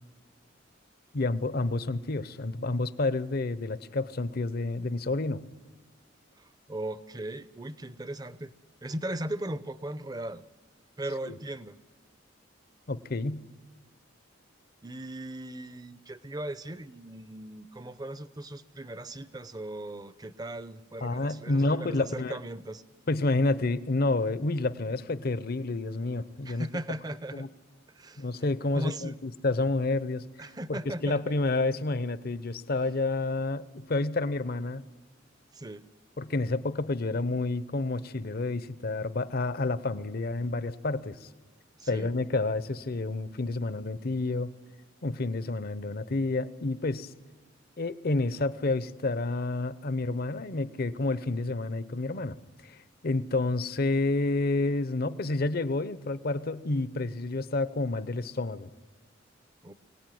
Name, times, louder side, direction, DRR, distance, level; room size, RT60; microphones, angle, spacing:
voice 1, 1.1-5.4 11.3-11.4 12.9-13.5 21.0-22.4 23.1-26.7 27.3-27.5 28.2-30.3 30.7-34.8 36.2-41.2 41.9-44.5 45.0-47.1 47.8-52.4 52.6-52.7 53.0-58.7, left 2 dB, 50° left, 15 dB, 0.7 m, -29 dB
voice 2, 6.4-8.5 8.8-10.4 11.0-11.8 14.8-22.8 26.4-27.5 27.9-28.3 28.7-29.2 30.4-31.3 35.5-35.8 41.8-42.1 59.6-59.7, right 1 dB, 20° right, 14 dB, 0.7 m, -38 dB
23.5 x 18.0 x 9.3 m, 1.3 s
head